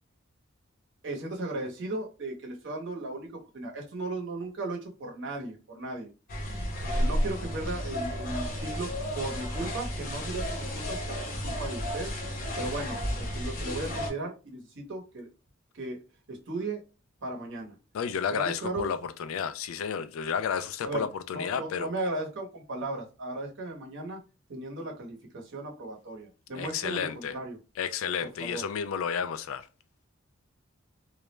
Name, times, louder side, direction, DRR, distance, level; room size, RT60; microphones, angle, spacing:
voice 1, 1.0-6.1 6.8-11.2 11.4-12.1 12.6-15.3 15.7-16.0 16.3-16.8 17.2-17.7 18.3-18.9 20.8-21.0 21.3-24.2 24.5-27.6 28.2-28.6, right 2 dB, 60° right, 0.8 m, -36 dB
sound 1, 6.3-14.1, equal, 40° left, 0.7 m, -32 dB
voice 2, 17.9-21.9 26.5-27.3 27.8-29.6, left 7 dB, 80° left, 0.3 m, -32 dB
2.3 x 2.0 x 3.0 m
head